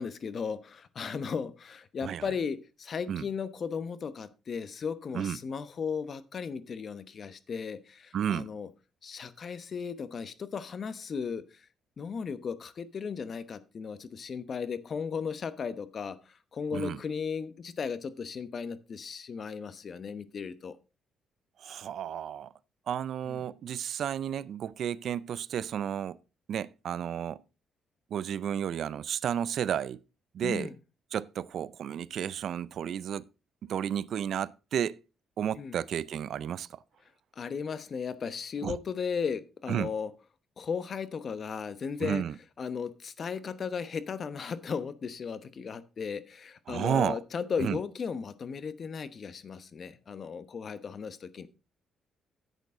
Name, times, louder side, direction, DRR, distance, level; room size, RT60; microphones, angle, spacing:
voice 1, 0.0-8.7 9.0-11.4 12.0-16.2 16.5-20.8 23.3-23.4 30.4-30.7 35.6-35.8 37.4-40.1 40.6-42.2 42.6-51.5, left 6 dB, 50° left, 1.0 m, -36 dB
voice 2, 8.1-8.5 16.7-17.0 21.6-22.5 22.9-26.2 26.5-27.4 28.1-30.0 30.3-30.7 31.1-33.3 33.6-35.0 35.4-36.8 38.6-38.8 39.7-39.9 42.0-42.3 46.7-47.2 47.6-47.8, right 9 dB, 65° right, 0.4 m, -32 dB
10.5 x 8.2 x 3.7 m
cardioid pair, 90°, 0 cm